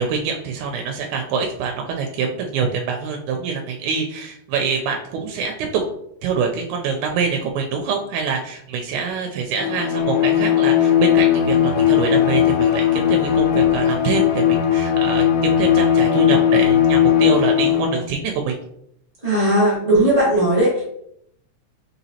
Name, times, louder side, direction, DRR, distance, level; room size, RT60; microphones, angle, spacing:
voice 1, 0.0-5.8 6.2-18.5, right 5 dB, 90° right, 2 dB, 2.0 m, -25 dB
Bowed string instrument, 9.6-18.1, left 10 dB, 75° left, 1.9 m, -17 dB
voice 2, 19.2-20.8, right 1 dB, 55° right, -7 dB, 0.4 m, -17 dB
4.6 x 3.9 x 2.7 m, 0.73 s
omnidirectional pair, 3.4 m